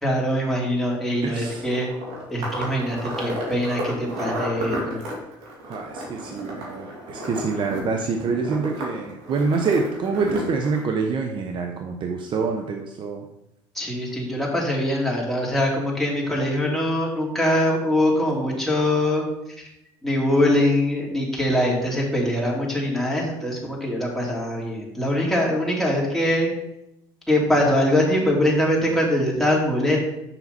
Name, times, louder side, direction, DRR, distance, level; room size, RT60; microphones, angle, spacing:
voice 1, 0.0-1.9 2.3-5.0 13.7-19.2 19.6-19.7 20.0-26.5 27.3-30.0, left 1 dB, ahead, -3 dB, 2.8 m, -23 dB
voice 2, 1.2-1.6 5.6-13.2, right 4 dB, 45° right, 4 dB, 0.8 m, -26 dB
sound 1, 1.4-10.8, equal, 75° right, 2.8 m, -32 dB
7.1 x 5.7 x 4.2 m, 0.86 s
supercardioid pair, 85°, 11 cm